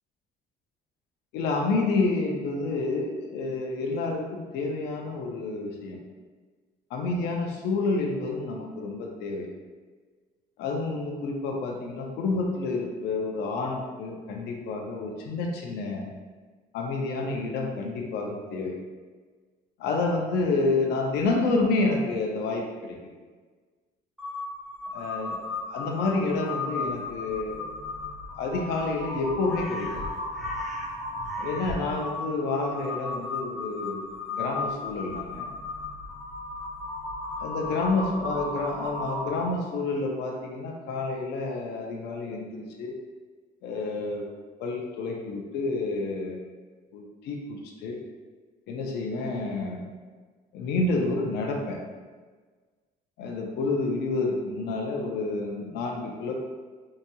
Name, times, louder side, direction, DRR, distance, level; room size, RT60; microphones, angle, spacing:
voice 1, 1.3-6.0 6.9-9.5 10.6-16.1 16.7-18.8 19.8-23.0 24.9-25.4 25.7-27.6 28.4-30.0 31.4-35.5 37.4-42.9 43.6-44.3 44.6-46.4 46.9-48.0 48.7-49.8 50.5-51.8 53.2-56.3, left 3 dB, 80° left, 1 dB, 0.6 m, -29 dB
Crow, 24.2-39.7, left 2 dB, ahead, 0.5 m, -35 dB
4.0 x 2.7 x 2.3 m, 1.4 s
cardioid pair, 110°, 17 cm